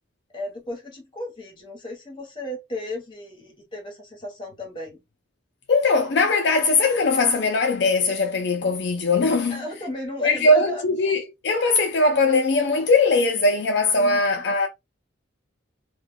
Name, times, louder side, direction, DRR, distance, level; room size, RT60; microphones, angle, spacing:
voice 1, 0.3-5.0 9.5-10.8 14.0-14.4, left 1 dB, 25° left, 0.9 m, -34 dB
voice 2, 5.7-9.6 10.2-14.7, left 3 dB, 60° left, 0.4 m, -20 dB
2.2 x 2.2 x 3.3 m
head